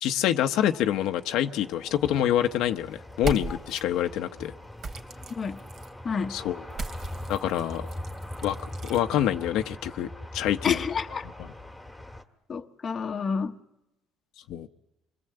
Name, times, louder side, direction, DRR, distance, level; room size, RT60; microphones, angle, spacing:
voice 1, 0.0-4.5 6.3-6.6 7.3-7.9 8.4-8.6 8.9-10.1 10.3-10.8 14.5-14.7, left 11 dB, 70° left, 1.0 m, -26 dB
sound 1, 0.7-12.2, left 1 dB, 5° left, 1.9 m, -41 dB
sound 2, 3.1-3.8 4.8-5.9 6.7-9.0, right 4 dB, 40° right, 2.7 m, -37 dB
voice 2, 6.0-6.4 10.6-11.2 12.5-13.6, left 6 dB, 30° left, 1.2 m, -29 dB
28.0 x 22.5 x 7.9 m
cardioid pair, 150°, 0 cm